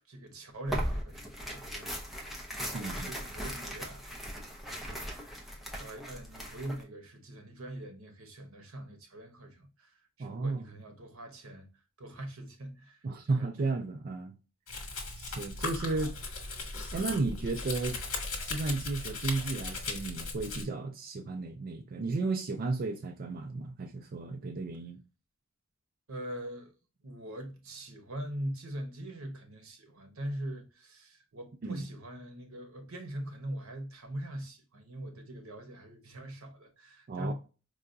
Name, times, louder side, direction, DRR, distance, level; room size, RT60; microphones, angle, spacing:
voice 1, 0.1-2.3 2.6-4.1 4.7-11.7 12.0-13.7 26.1-26.7 27.0-37.3, right 1 dB, 85° right, 1.0 m, -42 dB
Tearing, 0.7-6.8, equal, ahead, 0.6 m, -38 dB
voice 2, 2.7-3.1 10.2-10.6 13.0-14.4 15.2-16.1 16.9-18.0 18.5-25.0 31.6-31.8 37.1-37.3, right 3 dB, 45° right, 0.4 m, -33 dB
Domestic sounds home sounds, 14.7-20.6, left 3 dB, 70° left, 1.1 m, -38 dB
4.8 x 2.3 x 2.5 m
head